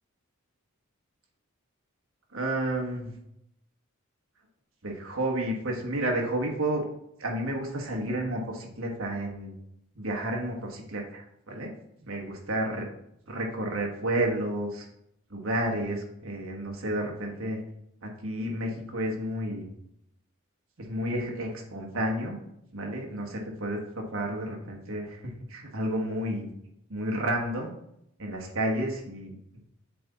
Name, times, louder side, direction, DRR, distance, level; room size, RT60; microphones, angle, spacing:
voice 1, 2.3-3.1 4.8-6.8 7.2-9.6 10.0-11.7 12.0-12.8 13.3-14.9 15.3-17.6 18.0-19.7 20.8-22.4 22.7-26.5 26.9-27.7 28.2-29.4, right 1 dB, 70° right, 1 dB, 1.4 m, -31 dB
7.6 x 3.5 x 4.0 m, 0.77 s
head